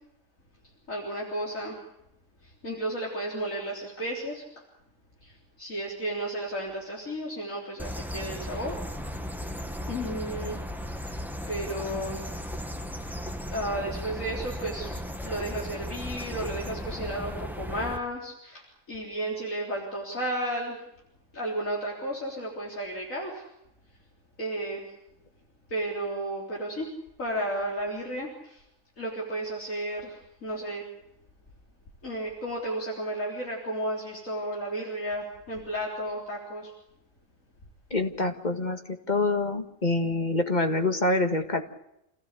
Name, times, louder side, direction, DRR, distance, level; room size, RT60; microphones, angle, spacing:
voice 1, 0.9-1.8 2.6-4.4 5.2-5.3 5.6-8.8 9.9-10.6 11.1-11.2 11.5-12.2 13.0-13.1 13.5-14.9 15.2-20.8 21.3-23.5 24.4-24.8 25.7-26.9 27.2-28.6 29.0-30.8 32.0-36.7, right 1 dB, 80° left, -3 dB, 4.2 m, -33 dB
sound 1, 7.8-18.0, equal, ahead, 1.5 m, -36 dB
voice 2, 37.9-41.6, left 2 dB, 35° left, 5 dB, 2.0 m, -26 dB
28.0 x 16.5 x 8.3 m, 0.84 s
omnidirectional pair, 1.4 m